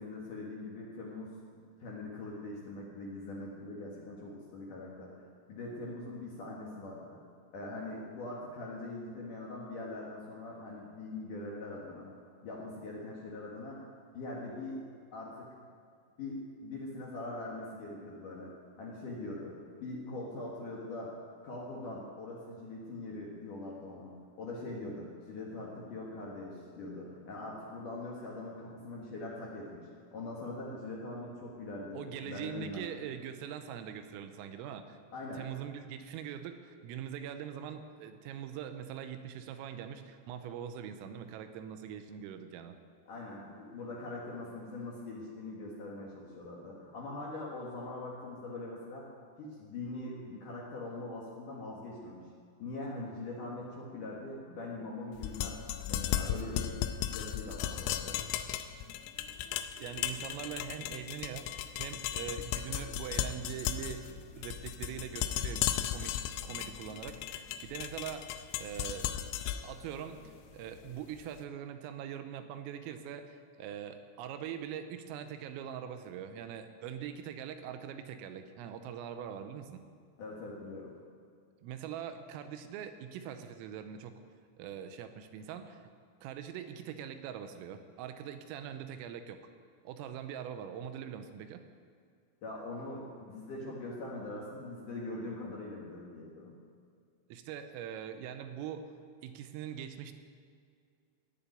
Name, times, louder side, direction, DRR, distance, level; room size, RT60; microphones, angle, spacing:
voice 1, 0.0-5.1 5.5-7.2 7.5-12.1 12.4-13.8 14.1-14.8 15.1-15.5 16.2-21.1 21.4-32.9 35.1-35.4 43.1-49.1 49.4-52.2 52.6-55.6 55.9-56.8 57.1-58.2 80.2-80.9 92.4-96.6, left 2 dB, 60° left, -4 dB, 2.3 m, -42 dB
voice 2, 31.9-35.0 35.4-42.8 59.8-69.1 69.6-79.8 81.6-84.2 84.6-85.9 86.2-89.4 89.8-91.6 97.3-98.9 99.2-100.1, right 9 dB, 85° right, 8 dB, 3.4 m, -42 dB
sound 1, 55.2-71.2, left 11 dB, 85° left, 3.2 m, -36 dB
17.5 x 7.2 x 9.3 m, 2.2 s
omnidirectional pair, 5.9 m